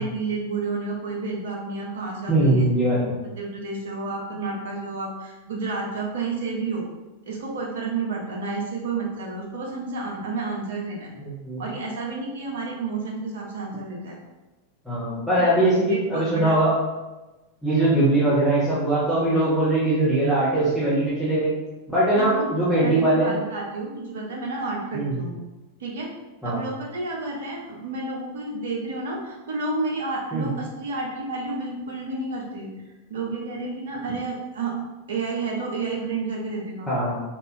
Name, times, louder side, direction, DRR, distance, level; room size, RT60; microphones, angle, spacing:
voice 1, 0.0-2.7 3.2-6.8 7.3-11.1 11.6-14.2 15.3-15.5 15.9-16.6 22.1-22.5 22.8-25.3 25.8-26.1 26.4-32.7 33.1-34.7 35.1-36.9, right 3 dB, 60° right, -2 dB, 0.8 m, -30 dB
voice 2, 2.3-3.2 11.2-11.6 14.9-16.8 17.6-21.5 21.9-23.3 24.9-25.2 26.4-26.6 30.3-30.5 36.9-37.2, right 1 dB, ahead, -11 dB, 0.9 m, -21 dB
3.4 x 2.5 x 2.6 m, 1.1 s
figure-of-eight pair, 90°, 0 cm